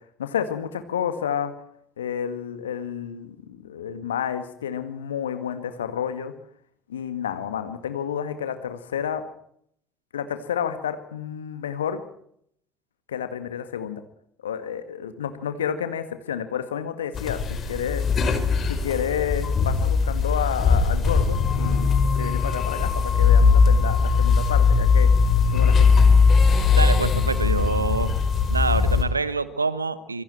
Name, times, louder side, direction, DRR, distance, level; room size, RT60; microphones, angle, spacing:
voice 1, 0.2-1.5 2.0-6.3 6.9-9.2 10.1-12.0 13.1-14.0 14.4-18.1 18.7-25.1 25.5-25.9, left 8 dB, 80° left, 9 dB, 1.9 m, -30 dB
sound 1, 17.1-29.0, left 5 dB, 40° left, 4.6 m, -19 dB
voice 2, 26.7-28.1 28.5-30.2, right 3 dB, 90° right, 15 dB, 1.1 m, -26 dB
26.0 x 22.5 x 4.5 m, 0.69 s
figure-of-eight pair, 55°, 0 cm